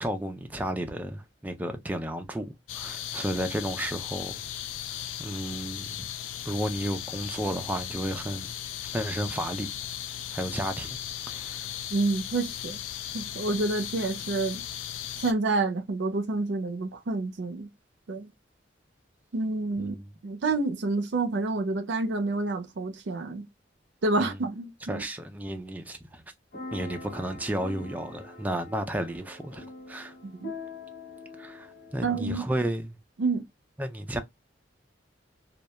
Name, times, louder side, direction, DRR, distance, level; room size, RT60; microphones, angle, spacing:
voice 1, 0.0-4.4 4.9-6.1 6.5-8.5 8.8-9.7 10.3-11.0 11.3-11.8 19.8-20.1 24.2-24.4 24.9-26.2 26.7-30.1 31.4-33.0 33.8-34.2, right 1 dB, 10° right, 0.3 m, -33 dB
sound 1, 2.7-15.3, left 10 dB, 85° left, 0.3 m, -37 dB
voice 2, 11.9-12.8 13.1-14.6 15.2-17.7 18.1-18.3 19.3-20.0 20.2-23.5 24.0-25.0 30.2-30.5 32.0-32.5 33.2-33.4, right 3 dB, 65° right, 0.5 m, -28 dB
sound 2, 26.5-32.3, left 2 dB, 60° left, 0.8 m, -43 dB
2.2 x 2.1 x 2.8 m
head